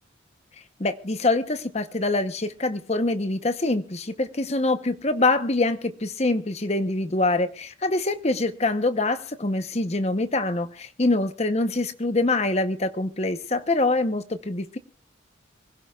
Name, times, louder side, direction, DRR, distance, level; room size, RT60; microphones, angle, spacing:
voice 1, 0.8-14.8, left 2 dB, 35° left, 10 dB, 0.9 m, -25 dB
25.0 x 16.5 x 2.4 m, 0.39 s
head